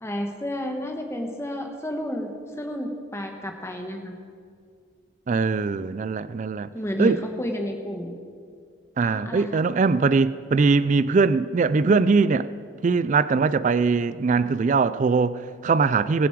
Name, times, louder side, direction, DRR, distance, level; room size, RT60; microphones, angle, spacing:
voice 1, 0.0-4.2 6.7-8.2 9.0-9.6, equal, 15° left, 1.1 m, -31 dB
voice 2, 5.3-6.7 7.0-7.2 9.0-12.5 12.8-16.3, right 4 dB, 35° right, 0.3 m, -21 dB
21.0 x 7.1 x 4.6 m
head